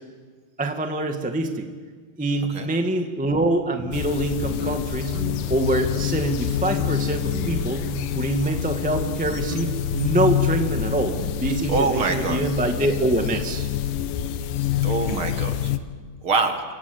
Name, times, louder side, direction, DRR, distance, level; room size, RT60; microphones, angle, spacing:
voice 1, 0.6-1.7 2.2-5.1 5.5-13.7, right 2 dB, 5° right, 4 dB, 0.7 m, -25 dB
sound 1, 3.8-5.7 5.9-6.5 6.8-8.7 9.0-9.2 9.5-12.5, right 5 dB, 90° right, 3.6 m, -38 dB
sound 2, 3.9-15.8, left 10 dB, 85° left, 2.6 m, -27 dB
voice 2, 11.7-12.4 14.8-15.5 16.2-16.6, right 3 dB, 45° right, 6 dB, 2.4 m, -24 dB
29.0 x 25.0 x 8.0 m, 1.5 s
omnidirectional pair, 3.9 m